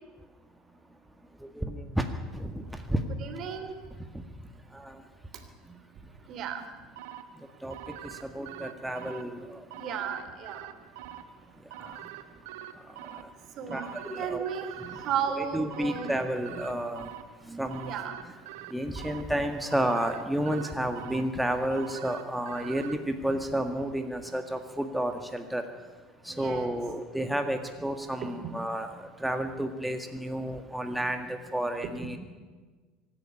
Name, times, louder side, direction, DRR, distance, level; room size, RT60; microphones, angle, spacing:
voice 1, 1.6-2.0 2.4-2.6 2.9-3.0 4.8-4.9 7.6-7.7 8.3-9.4 13.7-14.5 15.3-17.1 17.5-17.9 18.7-25.6 26.3-32.2, right 1 dB, 5° right, 6 dB, 1.9 m, -31 dB
voice 2, 3.2-3.7 6.3-6.7 9.8-10.7 13.6-14.7 15.0-16.1 17.8-18.2 26.3-26.7, right 8 dB, 45° right, 8 dB, 2.9 m, -34 dB
sound 1, 7.0-23.0, right 11 dB, 65° right, 1.1 m, -45 dB
25.0 x 11.5 x 10.0 m, 1.4 s
figure-of-eight pair, 70°, 0 cm